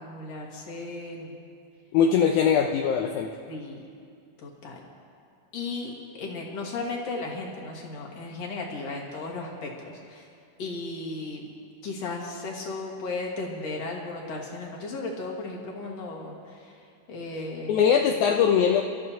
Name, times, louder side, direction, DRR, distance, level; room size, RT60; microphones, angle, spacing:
voice 1, 0.0-1.4 3.5-3.8 4.4-4.8 5.5-5.9 6.2-10.2 10.6-11.5 11.8-16.7 17.1-17.8, left 3 dB, 55° left, -2 dB, 2.6 m, -35 dB
voice 2, 1.9-3.3 17.7-18.8, left 7 dB, 80° left, 2 dB, 2.0 m, -21 dB
27.5 x 13.5 x 2.8 m, 2.4 s
omnidirectional pair, 3.7 m